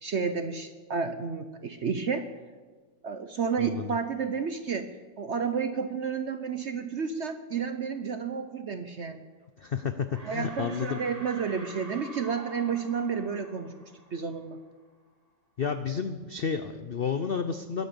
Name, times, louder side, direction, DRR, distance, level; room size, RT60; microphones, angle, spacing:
voice 1, 0.0-2.3 3.0-4.9 5.2-9.2 10.2-14.6, right 6 dB, 55° right, 9 dB, 0.8 m, -31 dB
voice 2, 3.6-4.0 9.6-11.0 15.6-17.9, left 6 dB, 70° left, 9 dB, 0.5 m, -31 dB
sound 1, 9.4-9.8 10.1-14.7, right 1 dB, 20° right, 1.6 m, -47 dB
21.5 x 9.5 x 6.9 m, 1.4 s
omnidirectional pair, 1.9 m